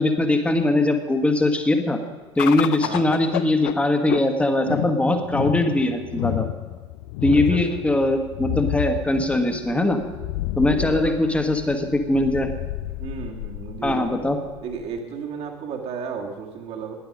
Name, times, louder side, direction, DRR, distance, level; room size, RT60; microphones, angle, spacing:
voice 1, 0.0-2.0 2.4-6.5 7.2-10.0 10.6-12.5 13.8-14.4, left 1 dB, 10° left, 5 dB, 1.5 m, -21 dB
sound 1, 2.4-15.0, left 16 dB, 50° left, 0.4 m, -30 dB
voice 2, 7.3-7.8 10.6-11.4 13.0-14.2 14.6-16.9, right 6 dB, 45° right, 1 dB, 2.0 m, -33 dB
16.5 x 10.5 x 5.3 m, 1.3 s
figure-of-eight pair, 70°, 15 cm